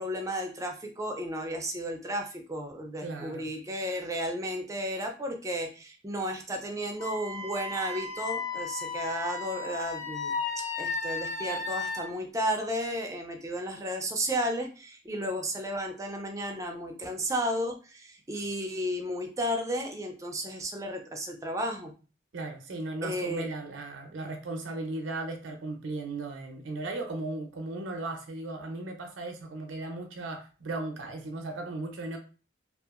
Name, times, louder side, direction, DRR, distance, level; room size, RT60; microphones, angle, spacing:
voice 1, 0.0-10.3 10.8-21.9 23.0-23.5, equal, 15° right, 3 dB, 0.4 m, -33 dB
voice 2, 3.0-3.5 22.3-32.2, right 2 dB, 70° right, 4 dB, 0.5 m, -36 dB
Wind instrument woodwind instrument, 7.0-12.0, left 4 dB, 40° left, 1.0 m, -34 dB
2.7 x 2.4 x 2.4 m, 0.35 s
head